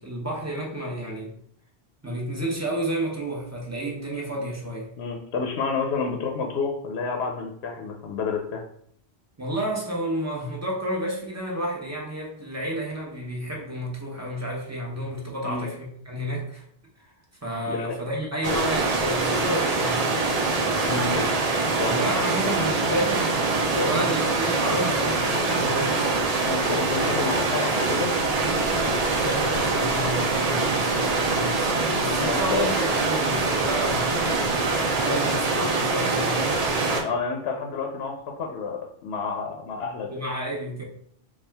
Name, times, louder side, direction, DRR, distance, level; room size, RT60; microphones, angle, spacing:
voice 1, 0.0-1.3 2.0-4.9 9.4-16.6 17.0-17.1 17.4-20.3 21.8-26.0 29.1-34.2 34.9-36.5 40.1-40.8, right 1 dB, 15° right, -3 dB, 0.8 m, -31 dB
voice 2, 5.0-8.6 15.4-15.7 17.7-17.9 20.9-21.2 21.8-22.1 26.4-28.1 32.2-32.7 35.1-35.3 37.0-40.1, left 4 dB, 75° left, 2 dB, 0.8 m, -29 dB
sound 1, 18.4-37.0, right 3 dB, 45° right, 0.5 m, -24 dB
4.2 x 2.4 x 3.4 m, 0.65 s
omnidirectional pair, 1.1 m